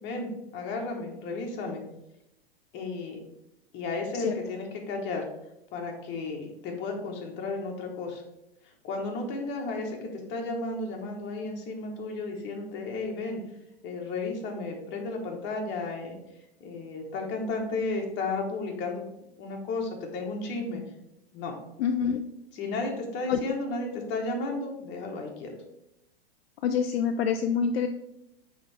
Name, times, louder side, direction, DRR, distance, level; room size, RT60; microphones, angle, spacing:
voice 1, 0.0-1.8 2.7-3.2 3.7-5.2 5.7-8.2 8.8-13.4 13.8-16.2 16.6-19.0 19.4-20.8 21.3-21.5 22.5-25.5, left 3 dB, 35° left, 1 dB, 1.6 m, -33 dB
voice 2, 21.8-22.2 23.3-23.4 26.6-27.9, left 7 dB, 70° left, 7 dB, 0.5 m, -26 dB
8.9 x 3.5 x 3.5 m, 0.86 s
hypercardioid pair, 115°, 32 cm